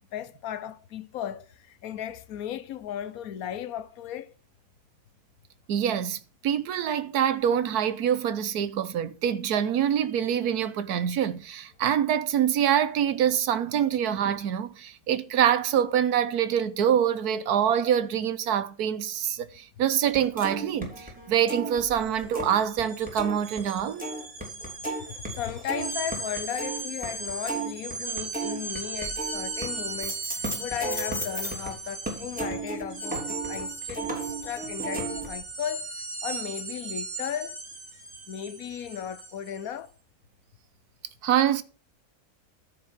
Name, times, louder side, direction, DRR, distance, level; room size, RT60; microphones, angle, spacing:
voice 1, 0.1-4.3 19.3-19.4 25.0-35.9 36.2-37.6 38.3-39.9, left 9 dB, 75° left, 1.2 m, -36 dB
voice 2, 5.7-24.1 41.2-41.6, right 9 dB, 90° right, 1.4 m, -25 dB
sound 1, 20.1-22.8 23.1-31.7 32.1-35.3, right 2 dB, 5° right, 3.0 m, -34 dB
sound 2, 22.0-22.1 22.4-39.6, right 3 dB, 60° right, 2.8 m, -37 dB
13.5 x 5.0 x 6.0 m
omnidirectional pair, 1.6 m